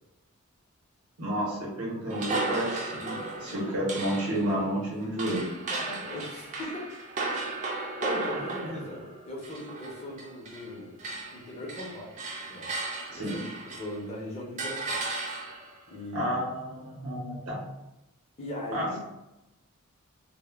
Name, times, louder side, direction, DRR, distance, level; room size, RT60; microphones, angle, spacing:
voice 1, 1.2-5.5 8.6-8.7 13.1-13.3 16.1-17.6 18.7-19.0, equal, 85° right, -4 dB, 0.8 m, -31 dB
sound 1, 2.1-10.7 11.0-14.0 14.6-15.8, right 2 dB, 35° right, 0.4 m, -35 dB
voice 2, 3.4-3.8 5.7-6.9 7.7-11.0 11.3-12.2 12.5-12.7 13.2-15.2 15.9-16.4 18.4-19.0, left 1 dB, 30° left, -2 dB, 0.5 m, -39 dB
2.1 x 2.1 x 3.3 m, 0.94 s
head